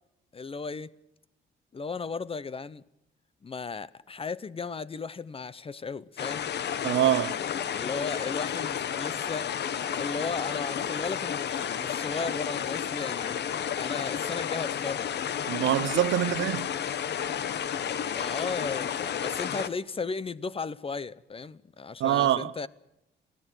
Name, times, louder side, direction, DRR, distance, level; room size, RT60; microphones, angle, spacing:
voice 1, 0.3-0.9 1.7-2.8 3.4-6.5 7.5-9.5 10.0-13.4 13.8-15.1 16.2-16.4 17.8-22.7, left 4 dB, 30° left, 0.7 m, -35 dB
sound 1, 6.2-19.7, left 8 dB, 60° left, 1.0 m, -32 dB
voice 2, 6.8-7.4 15.5-16.7 22.0-22.5, right 12 dB, 75° right, 0.8 m, -25 dB
21.0 x 15.0 x 9.1 m
cardioid pair, 90°, 20 cm